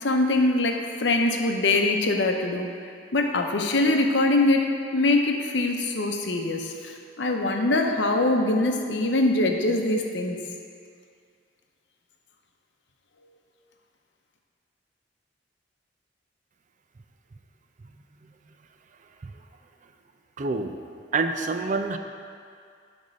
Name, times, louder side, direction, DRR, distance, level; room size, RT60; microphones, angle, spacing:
voice 1, 0.0-2.7 3.1-4.7 4.9-10.4, left 2 dB, 75° left, 3 dB, 0.8 m, -23 dB
voice 2, 20.4-20.8 21.1-22.0, right 3 dB, 45° right, 7 dB, 0.5 m, -27 dB
10.5 x 3.5 x 6.4 m, 2.3 s
head